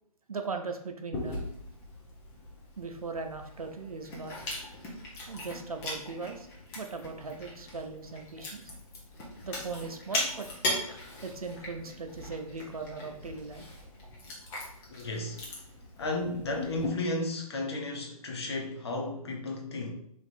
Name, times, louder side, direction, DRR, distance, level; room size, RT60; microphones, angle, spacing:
voice 1, 0.3-1.4 2.8-4.5 5.3-6.5 6.7-8.7 9.4-10.5 11.2-13.7, right 4 dB, 70° right, 5 dB, 0.6 m, -39 dB
Chewing mastication, 1.1-16.9, left 2 dB, 10° left, 0.6 m, -39 dB
voice 2, 14.9-15.4 16.0-19.9, left 2 dB, 45° left, 1 dB, 0.9 m, -33 dB
3.4 x 2.6 x 4.2 m, 0.68 s
figure-of-eight pair, 135°, 20 cm